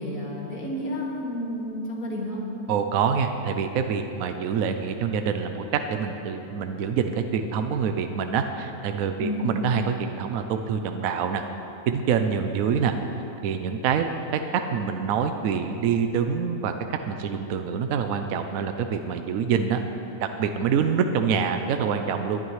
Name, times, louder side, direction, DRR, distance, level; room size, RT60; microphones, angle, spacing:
voice 1, 0.0-2.4 9.2-9.5, left 1 dB, 60° left, -3 dB, 2.5 m, -31 dB
voice 2, 2.7-5.6 5.9-11.4 11.9-12.9 13.4-14.1 14.3-19.8 20.2-22.4, right 7 dB, 70° right, 6 dB, 1.0 m, -26 dB
19.5 x 11.5 x 3.2 m, 3.0 s
omnidirectional pair, 1.6 m